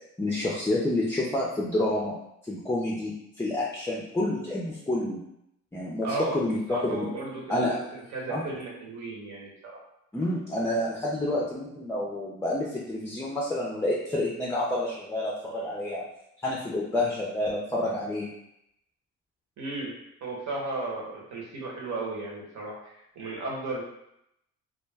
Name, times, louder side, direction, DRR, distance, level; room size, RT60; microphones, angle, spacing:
voice 1, 0.2-2.1 2.5-3.1 3.4-5.2 5.7-6.1 6.3-7.1 7.5-7.8 8.3-8.4 10.1-16.0 16.4-18.3, left 1 dB, 10° left, -4 dB, 0.4 m, -28 dB
voice 2, 6.0-9.8 19.6-19.9 20.2-23.8, right 3 dB, 65° right, -2 dB, 1.0 m, -35 dB
2.3 x 2.1 x 3.3 m, 0.79 s
cardioid pair, 90°, 30 cm